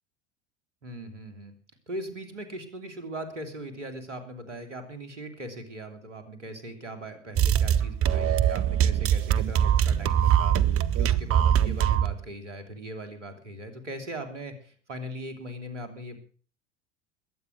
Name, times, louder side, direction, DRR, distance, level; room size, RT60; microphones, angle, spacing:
voice 1, 0.8-1.5 1.9-16.2, right 1 dB, 85° right, 7 dB, 3.4 m, -40 dB
sound 1, 7.4-12.2, right 9 dB, 40° right, 1.1 m, -22 dB
21.0 x 9.3 x 6.2 m, 0.43 s
figure-of-eight pair, 75°, 35 cm